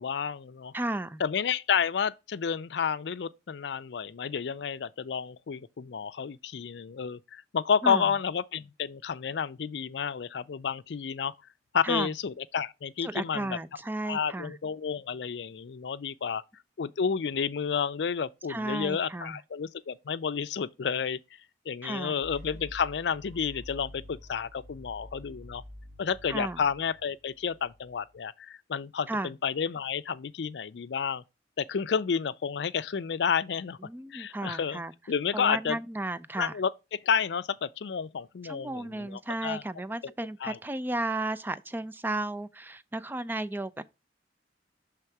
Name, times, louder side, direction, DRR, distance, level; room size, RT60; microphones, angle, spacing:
voice 1, 0.0-0.7 1.2-11.3 11.7-13.6 14.0-16.4 16.8-21.2 21.7-25.6 26.0-31.2 31.6-33.8 34.1-34.8 35.1-35.8 36.4-39.6 40.0-40.1 40.4-40.6, left 6 dB, 70° left, 0.4 m, -30 dB
voice 2, 0.7-1.2 7.8-8.1 11.8-12.1 13.0-14.6 18.5-19.4 21.8-22.2 26.3-26.6 29.1-29.3 33.8-34.9 35.3-36.5 38.4-43.8, right 2 dB, 10° right, 0.4 m, -34 dB
sound 1, 22.2-28.2, left 1 dB, 45° right, 1.6 m, -48 dB
6.8 x 3.5 x 4.6 m
head